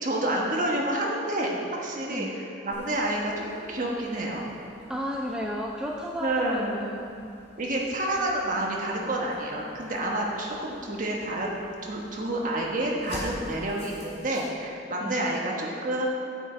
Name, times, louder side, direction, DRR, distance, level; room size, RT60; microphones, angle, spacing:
voice 1, 0.0-4.5 6.2-6.8 7.6-11.6 11.8-16.1, right 1 dB, 45° right, -2 dB, 1.2 m, -29 dB
voice 2, 2.1-2.4 4.9-7.5 15.0-15.2, equal, 5° right, -1 dB, 0.3 m, -33 dB
sound 1, 2.7-14.5, left 1 dB, 55° left, 2.0 m, -48 dB
8.9 x 6.9 x 4.4 m, 2.6 s
head